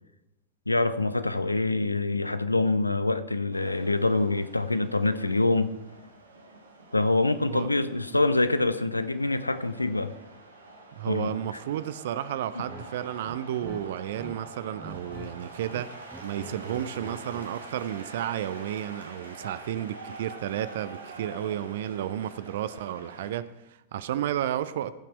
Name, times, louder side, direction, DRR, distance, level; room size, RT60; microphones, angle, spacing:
voice 1, 0.7-5.7 6.9-10.1 11.1-11.3, left 2 dB, 85° left, 0.5 m, -25 dB
sound 1, 3.5-23.3, right 2 dB, 75° right, 1.4 m, -46 dB
voice 2, 11.0-24.9, right 11 dB, 55° right, 0.5 m, -32 dB
sound 2, 12.6-12.9 13.2-14.4 14.6-15.3 15.6-17.5, right 1 dB, 10° right, 1.0 m, -44 dB
15.0 x 5.9 x 4.6 m
figure-of-eight pair, 90°, 0 cm